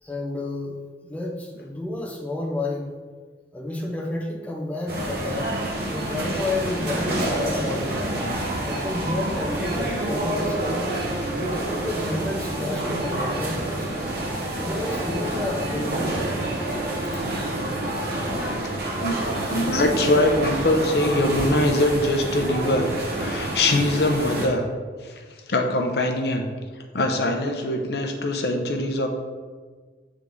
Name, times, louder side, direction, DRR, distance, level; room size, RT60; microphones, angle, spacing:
voice 1, 0.0-2.9 3.5-5.6 5.9-8.3 8.6-10.9 11.3-14.1 14.6-16.2, left 2 dB, 10° left, -1 dB, 0.6 m, -30 dB
sound 1, 4.9-24.5, right 1 dB, 55° right, 1.2 m, -28 dB
voice 2, 18.4-22.9 23.1-24.7 25.0-26.5 26.9-29.1, left 1 dB, 70° left, 4 dB, 0.7 m, -23 dB
7.8 x 3.7 x 3.6 m, 1.5 s
head